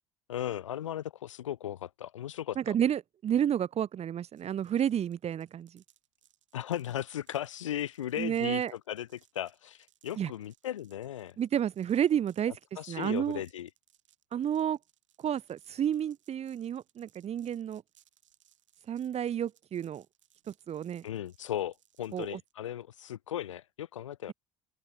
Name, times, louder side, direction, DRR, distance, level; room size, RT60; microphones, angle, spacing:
voice 1, 0.3-2.7 6.5-11.4 12.8-13.7 21.0-24.3, left 11 dB, 90° left, 0.7 m, -37 dB
voice 2, 2.6-5.8 8.2-8.7 10.2-10.3 11.4-12.5 12.9-13.4 14.3-14.8 15.2-17.8 18.9-20.0 20.5-21.0 22.1-22.4, right 9 dB, 40° right, 1.1 m, -30 dB
sound 1, 4.3-22.5, right 11 dB, 85° right, 7.2 m, -68 dB
open air
hypercardioid pair, 65°, 16 cm